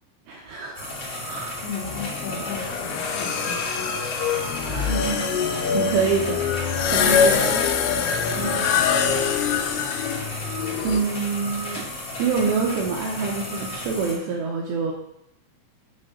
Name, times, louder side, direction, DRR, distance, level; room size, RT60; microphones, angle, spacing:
voice 1, 0.3-0.9 1.3-1.6 4.6-7.6 8.1-8.5 10.8-11.9 12.2-14.9, right 5 dB, 80° right, -1 dB, 2.6 m, -27 dB
sound 1, 0.7-14.2, left 1 dB, 50° left, 1.2 m, -34 dB
voice 2, 1.6-4.0 8.3-9.2, left 5 dB, 70° left, -2 dB, 3.3 m, -36 dB
sound 2, 1.8-11.0, left 7 dB, 90° left, 3.4 m, -24 dB
sound 3, 5.4-11.8, right 3 dB, 40° right, 1.7 m, -47 dB
7.4 x 4.4 x 6.4 m, 0.82 s
omnidirectional pair, 5.8 m